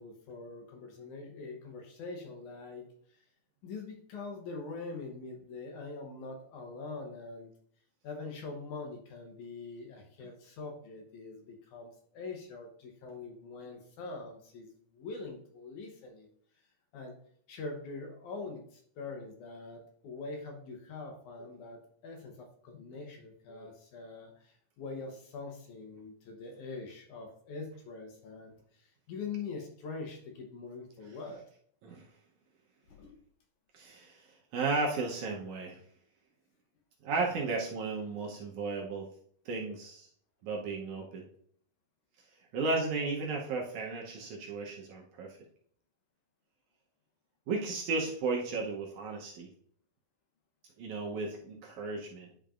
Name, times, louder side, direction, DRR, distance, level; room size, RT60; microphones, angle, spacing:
voice 1, 0.0-3.3 3.6-7.5 8.0-16.3 16.9-17.2 17.5-31.4 32.9-33.1, left 3 dB, 70° left, 3 dB, 2.2 m, -43 dB
voice 2, 33.7-34.2 34.5-35.8 37.0-39.1 39.5-40.1 40.4-41.3 42.5-45.4 47.5-49.5 50.8-52.3, right 3 dB, 70° right, 0 dB, 2.0 m, -34 dB
10.0 x 5.2 x 2.5 m, 0.62 s
omnidirectional pair, 4.0 m